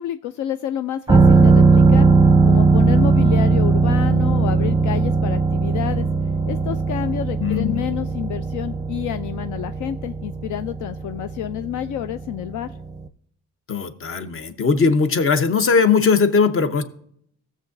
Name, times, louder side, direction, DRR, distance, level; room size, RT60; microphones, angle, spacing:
voice 1, 0.0-2.1 2.4-6.1 6.5-12.7, left 11 dB, 75° left, 10 dB, 0.5 m, -28 dB
sound 1, 1.1-12.6 13.0-13.1, right 4 dB, 15° right, 0.6 m, -18 dB
voice 2, 7.4-7.9 13.7-16.8, left 5 dB, 45° left, 10 dB, 1.0 m, -19 dB
16.0 x 7.4 x 2.6 m, 0.67 s
cardioid pair, 90°, 30 cm